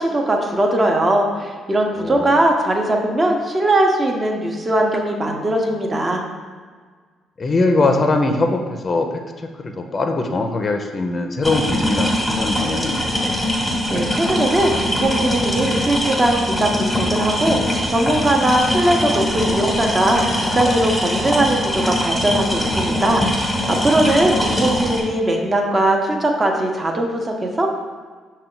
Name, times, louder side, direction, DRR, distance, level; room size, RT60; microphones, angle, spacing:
voice 1, 0.0-6.2 13.9-27.7, right 1 dB, 30° right, 1 dB, 0.7 m, -20 dB
voice 2, 2.0-2.3 7.4-13.3 24.2-24.4, left 2 dB, 40° left, 5 dB, 0.4 m, -22 dB
sound 1, 11.4-25.0, left 1 dB, 5° left, 1.0 m, -22 dB
5.6 x 2.2 x 3.8 m, 1.6 s
cardioid pair, 75°, 0 cm